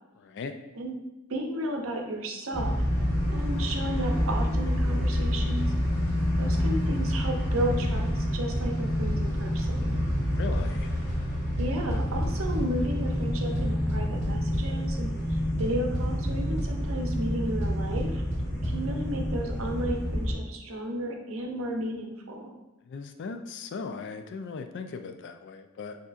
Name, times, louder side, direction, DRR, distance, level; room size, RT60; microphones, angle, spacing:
voice 1, 0.2-0.5 10.0-10.9 22.9-26.0, left 4 dB, 50° left, 7 dB, 0.3 m, -38 dB
voice 2, 1.3-2.9 3.3-5.7 6.4-10.0 11.6-18.2 18.6-22.6, right 1 dB, 60° right, 2 dB, 0.7 m, -33 dB
sound 1, 2.5-20.3, equal, 65° left, 1.2 m, -28 dB
sound 2, 5.6-5.7 6.1-6.2 6.6-6.7 7.0-7.1 7.6-7.7 8.1-8.2 8.6-8.7 9.1-9.2 9.6-9.7 10.1-10.2 10.6-10.7 11.1-11.2 11.6-12.6 13.5-14.6 15.6-15.7 15.9-16.3 16.6-16.7 17.6-17.7 18.0-18.1 18.3-18.4 18.6-18.7, equal, 30° right, 0.8 m, -31 dB
6.5 x 2.8 x 2.4 m, 0.98 s
head